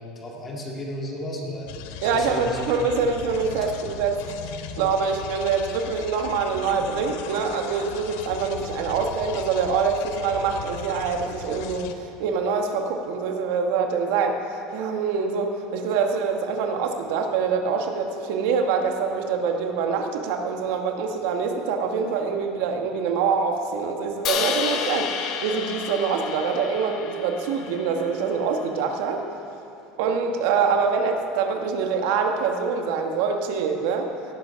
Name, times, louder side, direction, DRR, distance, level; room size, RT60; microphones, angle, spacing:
voice 1, 0.0-1.7 2.1-2.7, equal, 20° left, -1 dB, 2.1 m, -33 dB
sound 1, 1.7-11.9, left 8 dB, 75° left, 0.8 m, -38 dB
voice 2, 2.0-4.2 4.8-14.4 14.7-29.2 30.0-34.1, right 5 dB, 70° right, 4 dB, 1.3 m, -25 dB
Crash cymbal, 24.2-28.4, left 7 dB, 45° left, 1.0 m, -30 dB
17.0 x 8.3 x 5.6 m, 3.0 s
supercardioid pair, 150°, 0 cm